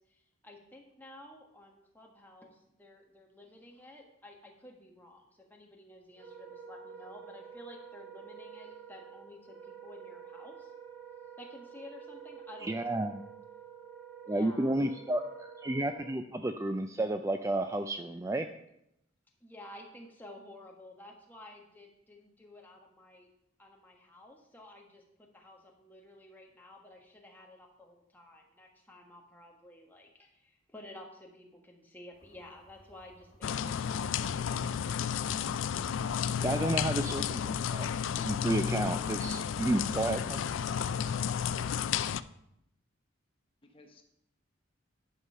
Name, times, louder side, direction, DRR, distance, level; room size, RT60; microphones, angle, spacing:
voice 1, 0.0-10.7 11.4-13.0 14.3-14.8 19.4-23.3 23.6-34.6, left 1 dB, 10° left, 0 dB, 1.4 m, -52 dB
Wind instrument woodwind instrument, 6.1-16.2, right 7 dB, 60° right, 1.5 m, -49 dB
voice 2, 12.6-13.2 14.3-18.5 36.4-37.9 38.2-40.4, right 1 dB, 15° right, 7 dB, 0.3 m, -31 dB
sound 1, 32.1-41.8, equal, 45° left, 2.5 m, -55 dB
sound 2, 33.4-42.2, left 8 dB, 70° left, 0.3 m, -32 dB
voice 3, 36.5-37.2 38.5-38.9 43.6-44.0, left 1 dB, 25° left, 3 dB, 1.1 m, -52 dB
11.0 x 5.5 x 5.6 m, 0.79 s
head